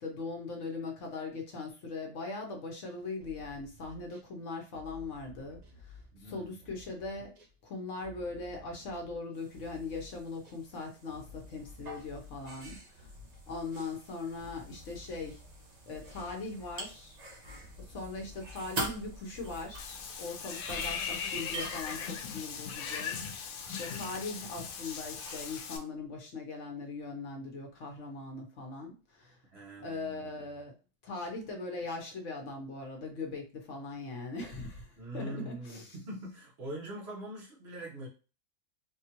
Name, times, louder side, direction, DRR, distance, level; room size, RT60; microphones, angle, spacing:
voice 1, 0.0-7.3 7.6-13.1 13.5-15.4 15.9-17.2 17.9-29.4 29.8-30.7 31.0-35.9, left 3 dB, 65° left, 1.1 m, -40 dB
sound 1, 3.0-4.3 4.7-10.6 11.0-20.4 20.7-20.8, left 3 dB, 80° right, 1.3 m, -53 dB
voice 2, 6.1-6.6 29.5-30.4 35.0-38.1, right 1 dB, 50° right, 1.2 m, -43 dB
sound 2, 9.3-25.6, right 2 dB, 35° right, 0.8 m, -46 dB
Water / Bathtub (filling or washing), 19.8-25.8, left 6 dB, 85° left, 1.0 m, -39 dB
3.6 x 2.3 x 2.8 m
omnidirectional pair, 1.4 m